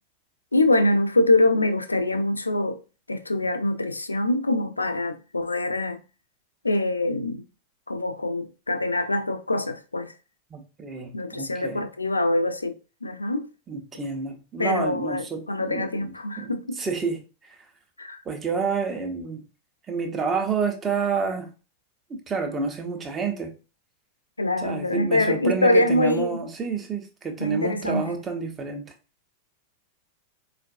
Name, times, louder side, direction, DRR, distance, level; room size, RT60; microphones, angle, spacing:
voice 1, 0.5-2.8 3.1-6.0 6.6-7.4 7.9-10.1 11.1-12.8 13.0-13.5 14.6-16.8 18.0-18.2 24.4-26.4 27.4-28.0, left 1 dB, 80° left, 0.4 m, -24 dB
voice 2, 10.5-11.8 13.7-17.2 17.5-17.6 18.2-19.4 19.9-21.5 22.1-23.6 24.6-28.9, right 5 dB, 20° right, 0.8 m, -29 dB
4.4 x 2.5 x 2.5 m
figure-of-eight pair, 90°, 0 cm